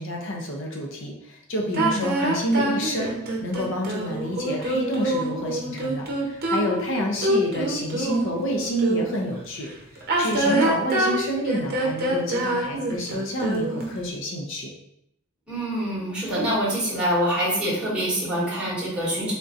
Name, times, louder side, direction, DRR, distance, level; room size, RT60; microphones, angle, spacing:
voice 1, 0.0-9.7 10.2-14.7, equal, 65° left, 0 dB, 0.7 m, -28 dB
sound 1, 1.7-9.3 10.0-14.0, right 1 dB, 50° right, 0.7 m, -25 dB
voice 2, 10.2-10.5 15.5-19.3, equal, 5° right, -9 dB, 1.3 m, -25 dB
3.6 x 2.7 x 2.5 m, 0.76 s
head